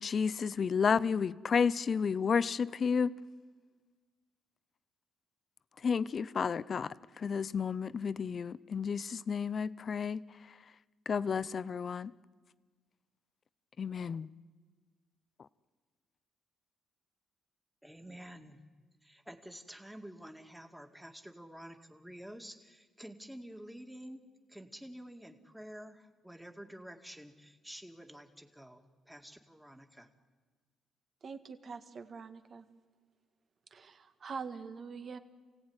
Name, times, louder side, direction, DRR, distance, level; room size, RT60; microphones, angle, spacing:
voice 1, 0.0-3.2 5.8-10.2 11.1-12.1 13.8-14.3, left 6 dB, 45° left, 17 dB, 0.7 m, -31 dB
voice 2, 17.8-18.6 19.0-30.1, equal, 5° right, 5 dB, 2.2 m, -50 dB
voice 3, 31.2-32.7 33.7-35.2, right 5 dB, 50° right, 8 dB, 1.8 m, -44 dB
27.5 x 17.0 x 9.7 m, 1.5 s
cardioid pair, 90°, 0 cm